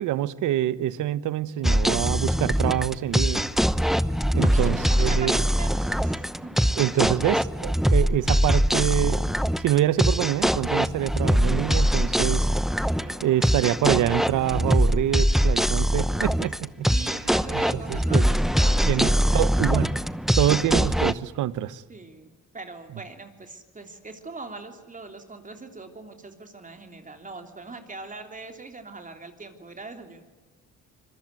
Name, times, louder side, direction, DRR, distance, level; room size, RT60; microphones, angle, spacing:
voice 1, 0.0-3.5 4.3-5.4 6.8-9.2 9.6-12.5 13.2-16.9 18.1-18.2 18.8-19.9 20.4-21.8, right 12 dB, 85° right, 1.1 m, -25 dB
sound 1, 1.6-21.1, equal, ahead, 0.9 m, -23 dB
voice 2, 4.4-6.5 7.1-7.2 13.0-13.8 16.9-19.5 21.9-22.3 22.5-30.2, right 3 dB, 25° right, 3.3 m, -41 dB
25.5 x 22.0 x 9.5 m
cardioid pair, 90°, 30 cm